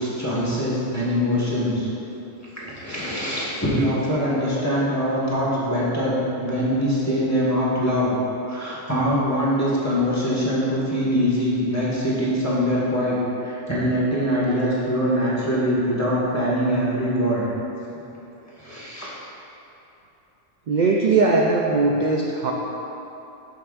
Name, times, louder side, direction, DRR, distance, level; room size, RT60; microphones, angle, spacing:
voice 1, 0.0-1.9 2.5-8.1 8.5-13.1 13.4-17.4 18.6-19.1, equal, 10° left, -8 dB, 1.6 m, -23 dB
voice 2, 20.7-22.5, right 3 dB, 65° right, -2 dB, 0.4 m, -19 dB
12.5 x 5.7 x 2.5 m, 3.0 s
omnidirectional pair, 1.4 m